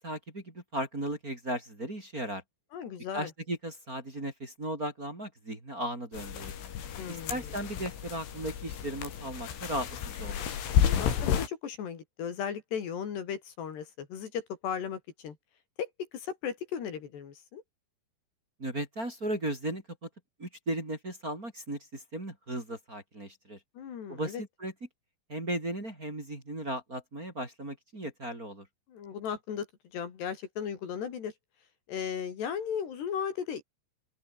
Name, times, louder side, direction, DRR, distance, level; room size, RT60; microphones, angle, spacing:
voice 1, 0.0-2.4 3.1-6.5 7.1-9.9 10.1-10.4 18.6-19.8 20.4-23.6 24.1-24.7 25.3-28.6, right 1 dB, 20° right, 4.2 m, -36 dB
voice 2, 2.7-3.3 7.0-7.6 10.8-15.4 15.8-17.6 23.8-24.4 28.9-29.7 29.9-31.3 31.9-33.6, left 7 dB, 60° left, 4.9 m, -36 dB
sound 1, 6.1-11.5, left 8 dB, 80° left, 6.0 m, -31 dB
open air
omnidirectional pair, 5.5 m